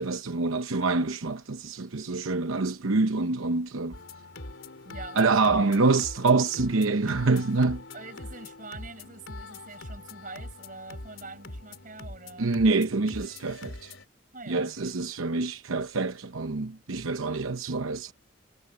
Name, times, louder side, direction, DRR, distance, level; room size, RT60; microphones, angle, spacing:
voice 1, 0.0-4.0 5.2-7.8 12.4-13.9 14.5-18.1, right 3 dB, 90° right, 0.9 m, -26 dB
sound 1, 3.9-14.1, left 2 dB, 75° left, 3.5 m, -43 dB
voice 2, 4.8-5.3 5.5-5.6 7.9-12.5 14.3-14.9, right 3 dB, 40° right, 6.6 m, -44 dB
head